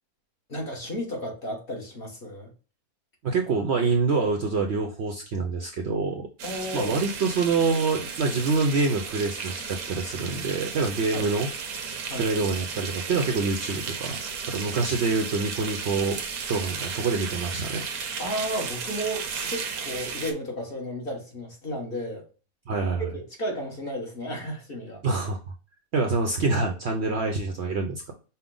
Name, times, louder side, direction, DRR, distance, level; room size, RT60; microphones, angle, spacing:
voice 1, 0.5-2.5 6.4-7.0 11.1-11.3 12.0-12.3 18.2-22.2 22.7-25.0, equal, 40° left, 1.3 m, -33 dB
voice 2, 3.2-6.3 6.7-11.5 12.1-14.2 14.5-16.2 16.5-17.8 22.7-23.1 25.0-25.4 25.9-28.1, right 4 dB, 60° right, 0.8 m, -26 dB
sound 1, 6.4-20.3, right 6 dB, 80° right, 1.2 m, -34 dB
5.5 x 2.2 x 3.7 m
omnidirectional pair, 1.6 m